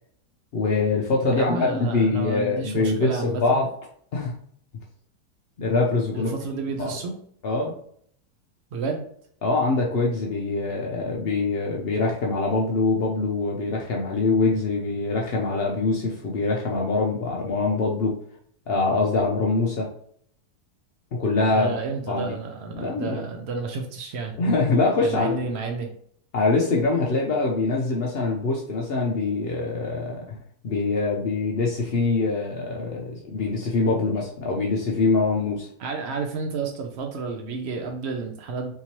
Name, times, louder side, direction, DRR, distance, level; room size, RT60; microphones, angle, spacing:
voice 1, 0.5-3.7 4.1-4.3 5.6-6.3 6.8-7.0 7.4-7.7 9.4-18.2 18.7-19.9 21.1-21.7 22.1-22.3 22.8-23.2 24.4-25.4 26.3-30.4 30.6-35.7, left 3 dB, 80° left, -1 dB, 0.5 m, -24 dB
voice 2, 1.3-3.7 6.1-7.2 8.7-9.0 21.5-24.3 25.0-25.9 35.8-38.7, right 4 dB, 85° right, 3 dB, 0.5 m, -31 dB
3.7 x 2.8 x 2.9 m, 0.63 s
omnidirectional pair, 1.8 m